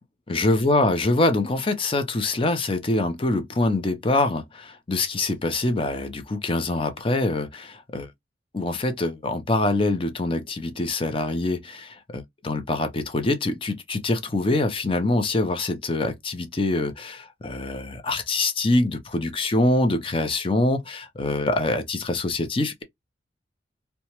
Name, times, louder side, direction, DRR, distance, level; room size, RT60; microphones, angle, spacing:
voice 1, 0.3-8.1 8.5-22.8, left 2 dB, 30° left, 0.5 m, -24 dB
2.8 x 2.2 x 2.9 m
head